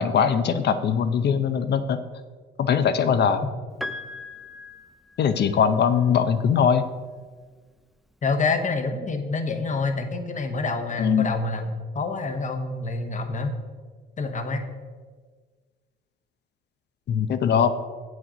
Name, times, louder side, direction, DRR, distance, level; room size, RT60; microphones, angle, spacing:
voice 1, 0.0-2.0 2.6-3.4 5.2-6.9 11.0-11.3 17.1-17.7, left 7 dB, 60° left, 10 dB, 0.6 m, -21 dB
Piano, 3.8-5.8 7.1-7.2, left 2 dB, ahead, 0.4 m, -38 dB
voice 2, 8.2-13.5 14.2-14.6, left 3 dB, 40° left, 7 dB, 1.0 m, -27 dB
7.8 x 6.3 x 5.0 m, 1.5 s
cardioid pair, 90°, 20 cm